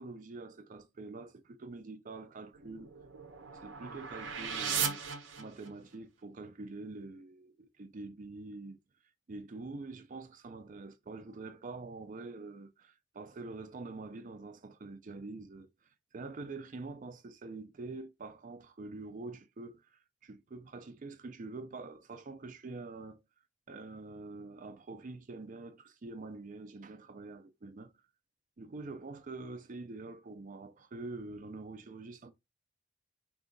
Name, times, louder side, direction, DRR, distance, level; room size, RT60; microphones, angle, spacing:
voice 1, 0.0-2.9 3.6-5.0 5.4-8.8 9.3-15.7 16.1-23.2 23.7-27.9 28.6-32.3, right 3 dB, 45° right, 0.5 m, -45 dB
sound 1, 2.5-6.0, right 6 dB, 75° right, 0.7 m, -37 dB
3.7 x 2.4 x 3.8 m
head